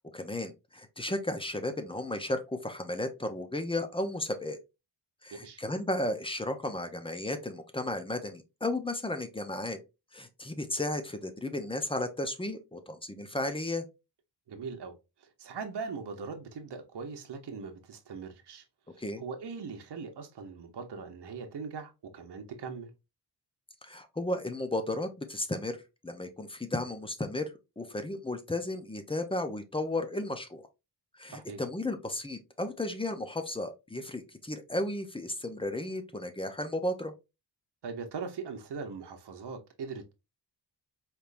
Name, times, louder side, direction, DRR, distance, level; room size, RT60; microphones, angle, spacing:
voice 1, 0.1-4.6 5.2-9.8 10.1-13.8 19.0-19.2 23.8-25.8 26.0-30.6 31.1-37.1, left 1 dB, 15° left, 0.6 m, -34 dB
voice 2, 5.3-5.6 14.5-18.6 18.9-22.9 31.3-31.6 37.8-40.1, right 5 dB, 65° right, 1.0 m, -41 dB
4.4 x 3.5 x 2.5 m
wide cardioid pair, 140°, 43 cm